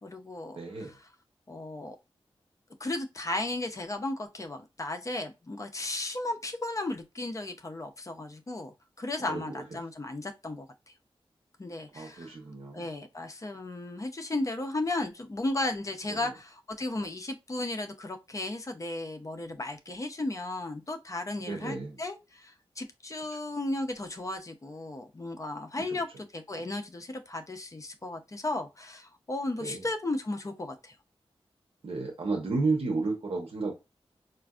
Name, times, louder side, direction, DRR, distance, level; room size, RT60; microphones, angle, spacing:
voice 1, 0.0-1.1 1.5-2.0 2.8-10.9 11.6-12.4 12.7-30.9, left 2 dB, 30° left, 0.6 m, -35 dB
voice 2, 0.5-0.9 9.3-9.4 11.9-12.8 16.1-16.2 21.4-22.0 25.9-26.0 29.6-29.8 31.8-33.7, right 3 dB, 70° right, 0.9 m, -32 dB
4.5 x 2.5 x 2.3 m
wide cardioid pair, 120°, 10 cm